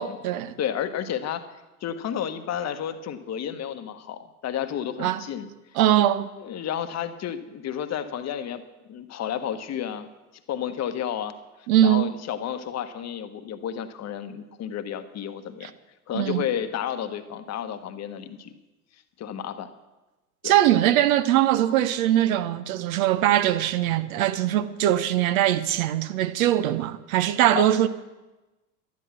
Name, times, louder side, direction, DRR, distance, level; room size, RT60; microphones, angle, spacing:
voice 1, 0.0-0.5 5.0-5.2 5.7-6.3 11.7-12.1 16.1-16.4 20.4-27.9, right 12 dB, 60° right, 0.9 m, -21 dB
voice 2, 0.6-1.4 1.8-5.5 6.4-8.6 8.9-10.1 10.5-11.3 11.8-15.7 16.1-18.5 19.2-19.7 20.4-20.6 27.5-27.7, left 9 dB, 35° left, 1.1 m, -31 dB
12.0 x 10.5 x 6.1 m
figure-of-eight pair, 80°, 47 cm